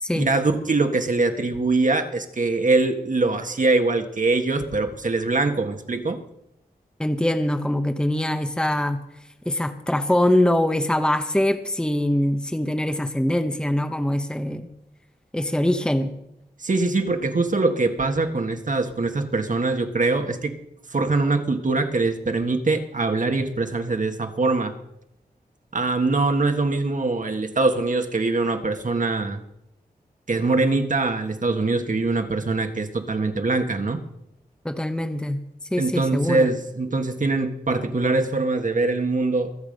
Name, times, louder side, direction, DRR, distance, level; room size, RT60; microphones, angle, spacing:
voice 1, 0.1-6.2 16.6-20.5 20.9-24.7 25.7-29.4 30.3-34.0 35.8-39.5, right 3 dB, 50° right, 6 dB, 1.7 m, -23 dB
voice 2, 7.0-9.0 9.4-14.7 15.3-16.1 34.6-35.4 35.7-36.5, left 1 dB, 5° left, 8 dB, 1.1 m, -23 dB
23.0 x 8.4 x 5.4 m, 0.80 s
wide cardioid pair, 85°, 17 cm